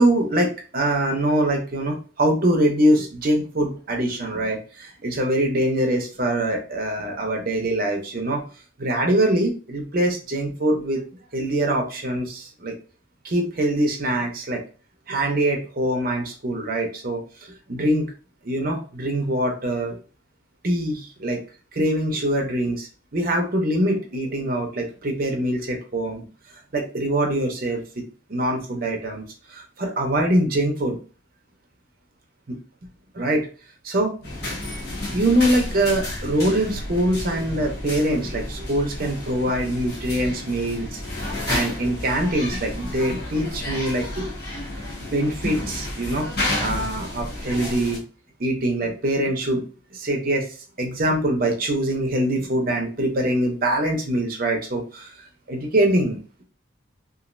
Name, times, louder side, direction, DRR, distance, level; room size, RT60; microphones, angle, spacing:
voice 1, 0.0-8.4 8.8-11.0 11.3-12.7 13.2-14.6 15.1-17.2 17.7-18.1 18.4-20.0 20.6-21.4 21.7-26.2 26.7-28.0 28.3-29.2 29.5-31.0 32.5-32.6 33.1-33.4 33.8-34.1 34.5-34.6 35.1-41.0 41.5-44.3 45.1-46.3 46.6-48.0 48.4-49.6 49.9-50.5 50.8-55.1 55.5-56.4, right 1 dB, 45° right, 1 dB, 0.7 m, -23 dB
sound 1, 34.2-48.0, left 1 dB, 50° left, 1.1 m, -31 dB
3.0 x 2.5 x 2.5 m, 0.37 s
head